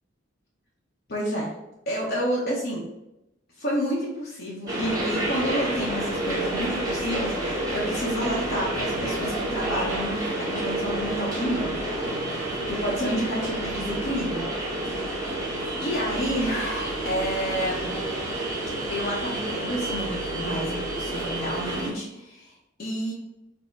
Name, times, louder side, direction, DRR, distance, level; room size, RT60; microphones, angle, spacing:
voice 1, 1.1-1.5 1.9-2.8 3.6-11.8 12.7-14.5 15.8-17.9 18.9-22.5 22.8-23.1, equal, 50° left, -4 dB, 0.9 m, -29 dB
sound 1, 4.7-21.9, right 1 dB, 20° right, 1.2 m, -29 dB
4.3 x 2.1 x 4.5 m, 0.91 s
head